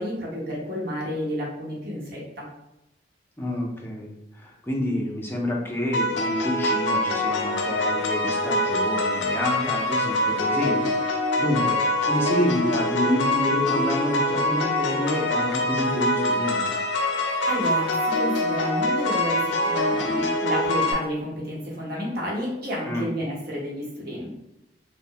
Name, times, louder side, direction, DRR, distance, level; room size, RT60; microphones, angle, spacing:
voice 1, 0.0-2.4 17.5-24.4, equal, 55° right, -4 dB, 0.9 m, -30 dB
voice 2, 3.4-16.7 22.9-23.1, left 1 dB, 10° left, -1 dB, 0.5 m, -28 dB
sound 1, 5.9-20.9, left 1 dB, 70° left, 0.4 m, -24 dB
2.7 x 2.0 x 2.7 m, 0.89 s
head